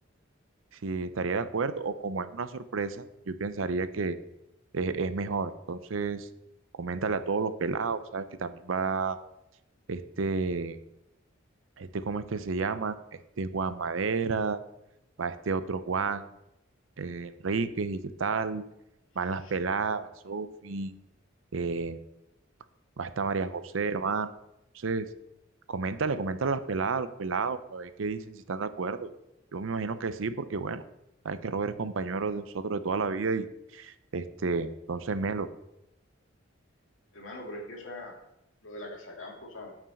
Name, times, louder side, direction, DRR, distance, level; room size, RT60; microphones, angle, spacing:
voice 1, 0.8-4.2 4.7-6.3 6.7-9.2 9.9-10.8 11.8-13.0 13.4-14.6 15.2-16.3 17.0-18.6 19.2-20.9 21.5-22.0 23.0-24.3 24.7-25.1 25.7-29.1 29.5-30.8 31.2-33.5 33.7-35.5, right 4 dB, 80° right, 12 dB, 0.6 m, -31 dB
voice 2, 37.1-38.2 38.6-39.8, left 1 dB, 80° left, 0 dB, 2.2 m, -42 dB
7.0 x 6.0 x 6.5 m, 0.87 s
head